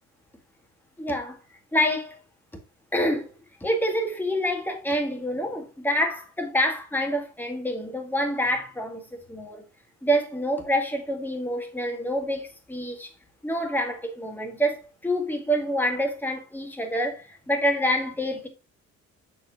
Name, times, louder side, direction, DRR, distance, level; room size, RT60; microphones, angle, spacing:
voice 1, 1.0-1.4 1.7-2.2 2.9-3.3 3.6-9.6 10.0-13.1 13.4-18.5, equal, 5° left, 1.8 m, -27 dB
6.6 x 4.3 x 3.7 m
cardioid pair, 90°, 30 cm